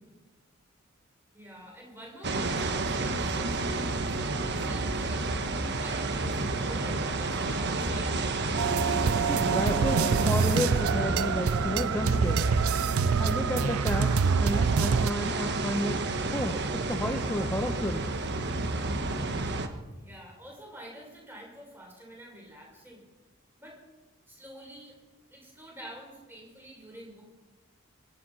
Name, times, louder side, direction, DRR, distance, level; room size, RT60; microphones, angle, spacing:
voice 1, 1.3-5.2 5.8-8.1 19.9-23.0 23.6-23.8 24.3-24.9 25.3-27.2, right 1 dB, 10° right, -2 dB, 5.9 m, -47 dB
sound 1, 2.2-19.7, right 2 dB, 55° right, 1.3 m, -30 dB
sound 2, 8.6-15.1, right 6 dB, 85° right, 0.5 m, -26 dB
voice 2, 9.2-12.5 13.2-16.0 16.3-18.1, left 1 dB, 10° left, 3 dB, 1.1 m, -32 dB
24.0 x 10.5 x 5.7 m, 1.2 s
head